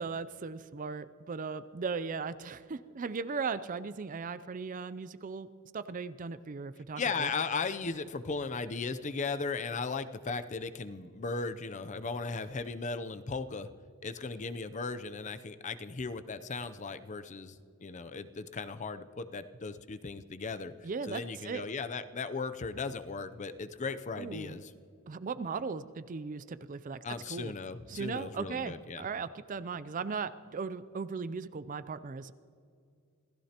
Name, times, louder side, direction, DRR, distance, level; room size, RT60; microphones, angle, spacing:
voice 1, 0.0-5.5 5.7-7.3 20.8-21.6 24.2-24.6 25.1-27.0 27.3-27.5 27.9-32.3, right 5 dB, 35° right, 14 dB, 0.4 m, -37 dB
voice 2, 7.0-13.7 14.0-20.7 21.0-24.7 27.0-29.1, left 4 dB, 35° left, 11 dB, 0.5 m, -37 dB
27.0 x 16.0 x 2.9 m, 2.3 s
head